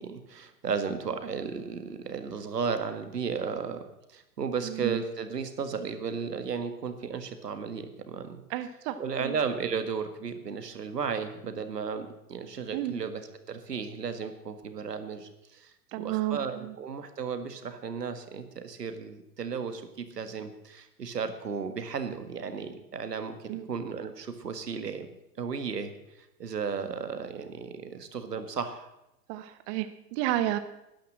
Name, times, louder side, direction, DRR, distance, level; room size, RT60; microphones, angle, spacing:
voice 1, 0.0-8.4 9.0-25.1 25.4-28.9, right 6 dB, 80° right, 9 dB, 1.8 m, -34 dB
voice 2, 4.6-5.0 8.5-9.0 9.2-9.3 12.7-12.9 15.9-16.7 23.5-23.6 29.3-30.6, right 14 dB, 35° right, 11 dB, 0.9 m, -31 dB
12.0 x 10.5 x 7.5 m, 0.87 s
figure-of-eight pair, 100°, 47 cm